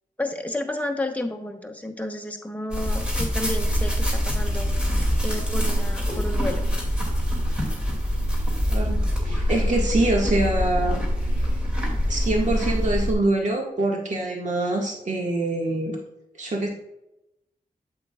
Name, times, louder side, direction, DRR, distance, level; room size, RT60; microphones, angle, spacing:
voice 1, 0.2-4.7 5.2-6.7, left 1 dB, 10° left, 4 dB, 1.0 m, -31 dB
sound 1, 2.7-13.1, equal, 5° right, 2.5 m, -24 dB
voice 2, 8.7-11.0 12.1-15.9 16.4-16.7, right 2 dB, 55° right, -1 dB, 1.8 m, -25 dB
8.2 x 7.9 x 2.4 m, 0.86 s
wide cardioid pair, 85°, 15 cm